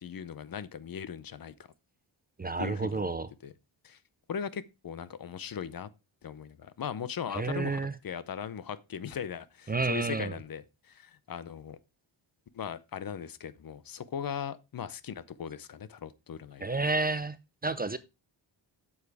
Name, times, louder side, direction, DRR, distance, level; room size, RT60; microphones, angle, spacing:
voice 1, 0.0-1.5 2.6-3.1 3.4-3.5 3.8-4.0 4.3-5.9 6.2-11.8 12.5-16.7, left 8 dB, 50° left, 0.7 m, -39 dB
voice 2, 2.4-3.3 7.3-7.9 9.7-10.3 16.6-17.4 17.6-18.0, right 3 dB, 20° right, 0.4 m, -30 dB
8.1 x 7.3 x 3.3 m
wide cardioid pair, 140°, 45 cm